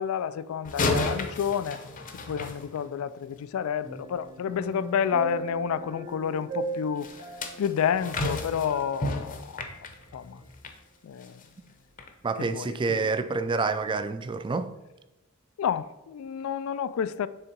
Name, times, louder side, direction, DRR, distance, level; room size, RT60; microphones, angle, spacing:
voice 1, 0.0-1.8 2.3-7.1 7.6-9.7 10.1-10.4 11.0-11.4 12.4-13.1 15.6-17.3, left 8 dB, 85° left, 0.3 m, -30 dB
sound 1, 0.6-3.2 7.0-10.8 11.2-11.4 12.0-12.1, left 2 dB, 40° left, 0.7 m, -32 dB
sound 2, 3.8-9.3 9.6-9.8, right 4 dB, 70° right, 2.0 m, -39 dB
voice 2, 12.2-14.7, right 4 dB, 25° right, 0.3 m, -28 dB
6.6 x 3.5 x 4.5 m
head